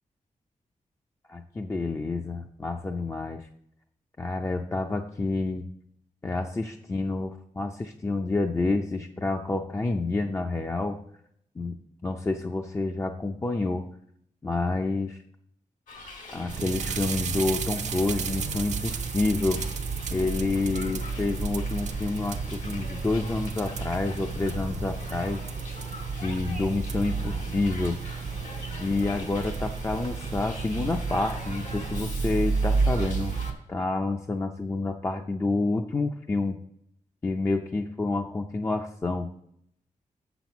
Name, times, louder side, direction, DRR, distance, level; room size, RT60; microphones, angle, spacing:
voice 1, 1.3-3.5 4.2-5.7 6.2-11.0 11.6-11.8 12.0-13.9 14.4-15.2 16.3-19.6 20.1-25.5 26.2-28.0 28.8-33.3 33.7-36.6 37.2-39.3, left 3 dB, 20° left, 4 dB, 0.4 m, -28 dB
Hiss, 15.9-33.5, left 3 dB, 90° left, 2.3 m, -43 dB
sound 1, 16.5-33.5, right 5 dB, 65° right, 0.6 m, -31 dB
7.2 x 6.0 x 7.0 m, 0.72 s
wide cardioid pair, 155°, 13 cm